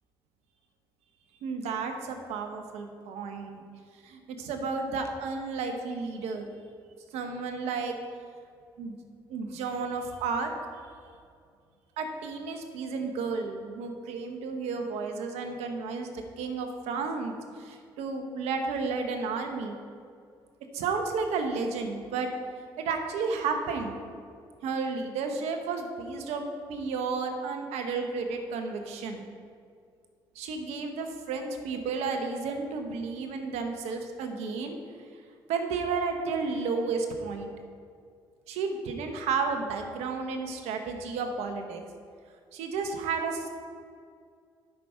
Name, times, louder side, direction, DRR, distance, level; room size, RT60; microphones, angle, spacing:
voice 1, 1.4-3.6 4.0-6.5 7.1-7.9 8.8-9.0 9.3-10.5 12.0-19.7 20.7-22.3 22.8-24.0 24.6-29.3 30.3-34.8 35.5-37.5 38.5-41.8 42.5-43.5, right 4 dB, 80° right, 5 dB, 1.1 m, -32 dB
11.0 x 5.8 x 4.4 m, 2.2 s
hypercardioid pair, 55°, 11 cm